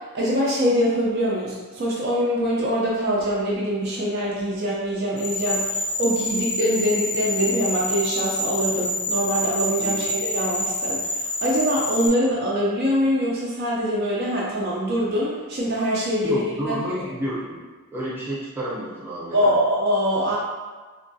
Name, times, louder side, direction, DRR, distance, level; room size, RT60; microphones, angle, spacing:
voice 1, 0.1-17.1 19.3-20.4, equal, 45° right, -5 dB, 0.4 m, -24 dB
sound 1, 5.2-12.1, left 1 dB, 70° left, 0.4 m, -27 dB
voice 2, 16.2-17.6 17.9-19.5, right 1 dB, 10° right, -8 dB, 0.7 m, -30 dB
3.6 x 2.2 x 2.6 m, 1.3 s
head